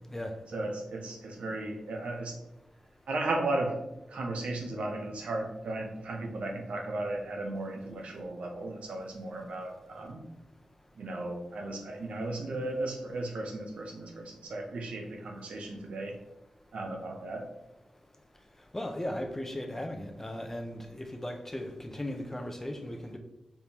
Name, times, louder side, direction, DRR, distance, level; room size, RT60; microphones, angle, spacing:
voice 1, 0.5-2.4 3.1-3.8 4.1-10.2 11.0-16.2 16.7-17.5, right 2 dB, 80° right, 2 dB, 0.7 m, -35 dB
voice 2, 18.7-23.2, left 1 dB, 20° left, 5 dB, 0.6 m, -37 dB
4.4 x 3.5 x 2.8 m, 0.91 s
cardioid pair, 55°, 2 cm